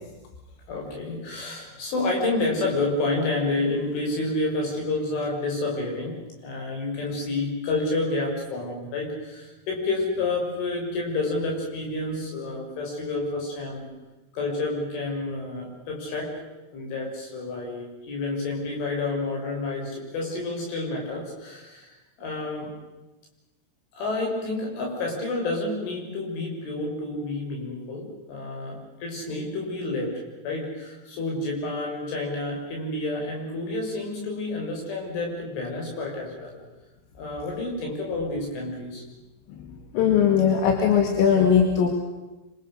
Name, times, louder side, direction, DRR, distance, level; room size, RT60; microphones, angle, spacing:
voice 1, 0.7-13.9 14.3-16.4 16.7-22.7 23.9-36.6 37.2-39.0, left 2 dB, 75° left, 0 dB, 8.3 m, -29 dB
voice 2, 39.9-41.9, left 7 dB, 90° left, 3 dB, 4.7 m, -19 dB
27.0 x 25.0 x 6.5 m, 1.1 s
omnidirectional pair, 5.6 m